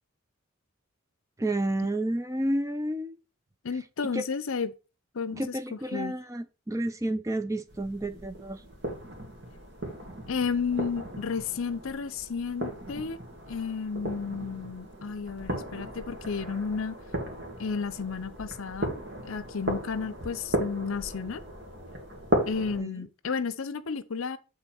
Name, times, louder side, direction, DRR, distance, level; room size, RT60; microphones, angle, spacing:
voice 1, 1.4-3.2 4.1-4.2 5.3-8.6 22.8-23.0, right 1 dB, 15° right, 0.4 m, -30 dB
voice 2, 3.6-4.7 5.1-5.4 5.7-6.1 10.3-13.2 13.5-17.0 17.6-18.9 19.2-21.4 22.5-24.4, left 5 dB, 65° left, 0.6 m, -32 dB
sound 1, 7.7-22.8, right 1 dB, 50° right, 2.0 m, -36 dB
8.9 x 3.8 x 4.4 m
head